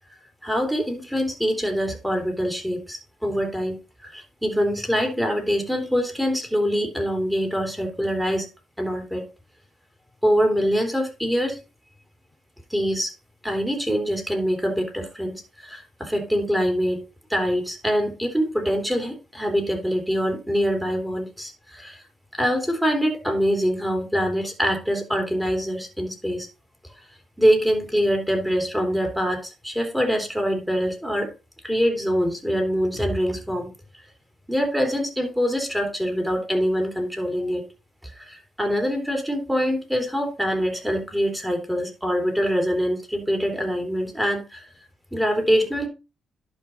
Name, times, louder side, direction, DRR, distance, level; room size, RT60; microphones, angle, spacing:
voice 1, 0.4-8.5 8.8-9.2 10.2-11.6 12.7-13.1 13.4-17.0 17.3-22.0 22.3-26.5 27.4-31.3 31.6-33.7 34.5-37.6 38.0-44.7 45.1-45.9, equal, 5° right, 4 dB, 3.2 m, -24 dB
11.5 x 4.9 x 4.3 m, 0.29 s
cardioid pair, 90°, 0 cm